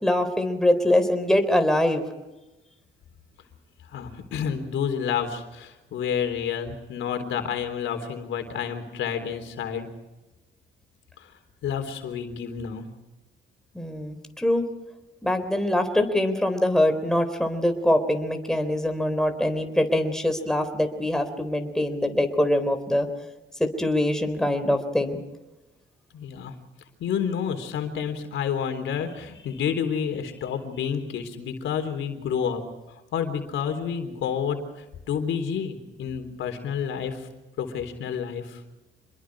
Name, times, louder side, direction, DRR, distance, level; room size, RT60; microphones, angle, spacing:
voice 1, 0.0-2.1 13.7-14.7 15.2-23.1 23.6-25.2, left 1 dB, 5° left, 6 dB, 3.8 m, -23 dB
voice 2, 3.9-9.9 11.2-11.3 11.6-12.9 26.1-26.5 27.0-32.6 33.1-37.3 37.6-38.6, left 7 dB, 75° left, 7 dB, 3.8 m, -29 dB
27.5 x 21.5 x 4.9 m, 1.1 s
cardioid pair, 90°, 20 cm